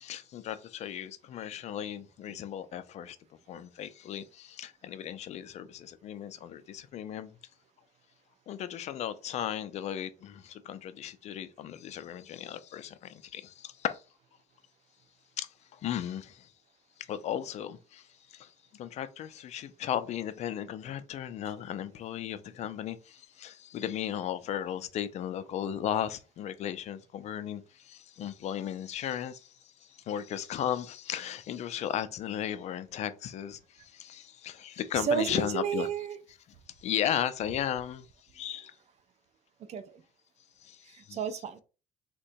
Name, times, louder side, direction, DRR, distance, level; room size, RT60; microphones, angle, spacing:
voice 1, 0.0-3.2 3.5-7.4 8.5-14.0 15.4-16.5 17.1-29.5 29.8-35.9 36.8-38.1 38.3-38.8 40.6-41.2, left 10 dB, 45° left, 0.4 m, -36 dB
voice 2, 35.0-36.2 39.7-40.0 40.9-41.6, right 8 dB, 45° right, 0.5 m, -32 dB
3.7 x 2.2 x 2.6 m
cardioid pair, 120°, 16 cm